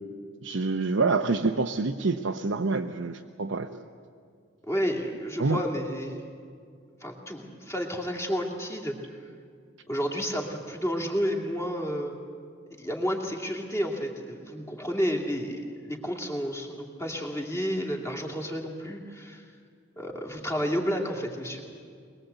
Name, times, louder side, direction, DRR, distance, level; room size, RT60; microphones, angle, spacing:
voice 1, 0.4-3.7 5.4-5.6, right 3 dB, 75° right, 3 dB, 0.8 m, -27 dB
voice 2, 4.7-6.2 7.0-9.0 9.9-12.2 12.8-19.4 20.0-21.6, equal, 15° left, 1 dB, 2.5 m, -31 dB
22.0 x 22.0 x 8.1 m, 2.2 s
head